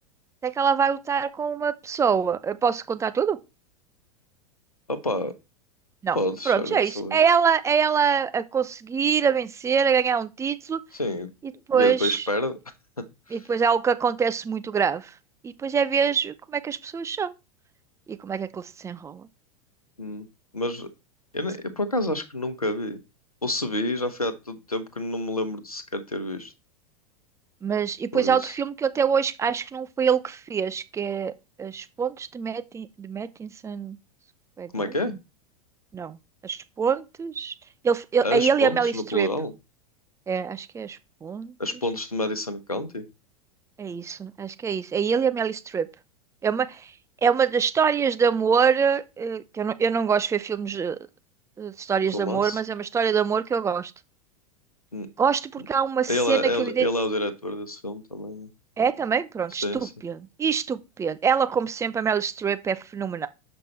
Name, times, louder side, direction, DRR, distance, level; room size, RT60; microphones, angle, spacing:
voice 1, 0.4-3.4 6.0-6.2 6.5-10.8 11.7-12.3 13.3-15.1 15.4-17.3 18.1-19.3 27.6-31.3 31.6-34.0 34.6-34.9 35.9-36.2 36.4-37.5 37.8-39.3 40.3-41.5 43.8-45.9 46.4-46.9 47.2-51.0 51.6-53.9 55.2-56.9 58.8-63.3, right 6 dB, 15° right, 0.7 m, -25 dB
voice 2, 4.9-5.3 6.1-7.2 10.9-11.3 11.7-12.6 20.0-20.3 20.5-20.9 21.3-23.0 23.4-26.5 28.1-28.5 34.7-35.2 38.2-39.5 41.6-43.0 52.1-52.6 54.9-55.1 56.1-58.5 59.6-59.9, left 1 dB, 90° left, 1.1 m, -28 dB
7.5 x 5.4 x 4.2 m
figure-of-eight pair, 90°, 18 cm